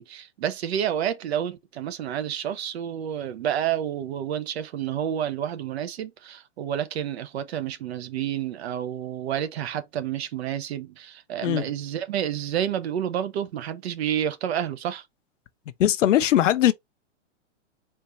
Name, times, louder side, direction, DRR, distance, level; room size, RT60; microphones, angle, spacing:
voice 1, 0.0-15.0, right 10 dB, 60° right, 0.9 m, -29 dB
voice 2, 15.8-16.7, left 12 dB, 80° left, 0.8 m, -20 dB
4.4 x 2.7 x 4.2 m
hypercardioid pair, 155°, 37 cm